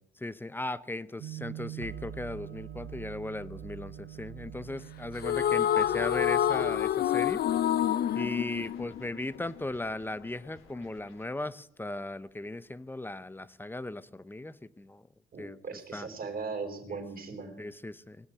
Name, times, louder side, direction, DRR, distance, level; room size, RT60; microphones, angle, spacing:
voice 1, 0.2-7.4 8.1-15.0 15.4-15.6 15.9-16.1 17.6-18.3, left 2 dB, 10° left, 17 dB, 0.7 m, -37 dB
sound 1, 1.2-6.8, right 10 dB, 65° right, 1.3 m, -44 dB
sound 2, 5.2-9.6, left 10 dB, 55° left, 0.5 m, -27 dB
sound 3, 6.9-11.3, left 5 dB, 85° left, 2.6 m, -55 dB
voice 2, 15.3-17.6, right 4 dB, 45° right, 4 dB, 3.8 m, -38 dB
19.5 x 7.1 x 9.1 m, 0.76 s
cardioid pair, 90°, 20 cm